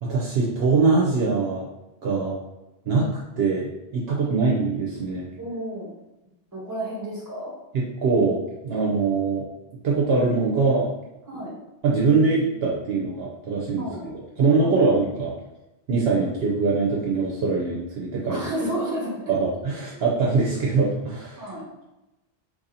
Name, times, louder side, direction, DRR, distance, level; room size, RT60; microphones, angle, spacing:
voice 1, 0.0-1.7 2.0-2.4 2.9-3.1 3.4-5.3 7.7-9.4 9.8-10.9 11.8-15.3 15.9-18.4 19.3-21.5, right 4 dB, 65° right, -4 dB, 0.8 m, -23 dB
voice 2, 5.4-5.9 6.5-7.5 11.3-11.5 13.8-14.1 14.6-14.9 18.3-19.2 19.9-20.0 21.4-21.6, right 1 dB, 15° right, -5 dB, 1.2 m, -31 dB
3.0 x 2.7 x 4.0 m, 0.99 s
omnidirectional pair, 1.2 m